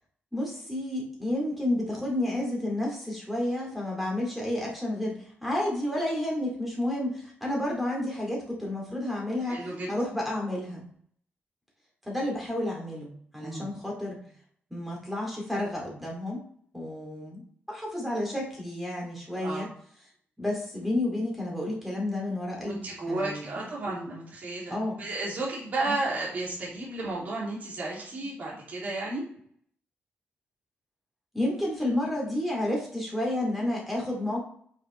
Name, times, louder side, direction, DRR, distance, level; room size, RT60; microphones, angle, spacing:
voice 1, 0.3-10.8 12.1-14.2 14.7-16.4 16.7-17.4 17.7-19.7 20.4-22.8 23.1-23.7 24.7-25.0 25.9-26.0 31.3-34.4, left 1 dB, 5° right, -2 dB, 2.3 m, -31 dB
voice 2, 9.4-9.9 13.4-13.7 19.3-19.7 22.6-29.2, right 2 dB, 45° right, -5 dB, 2.6 m, -33 dB
8.5 x 6.0 x 3.2 m, 0.62 s
wide cardioid pair, 175°, 4 cm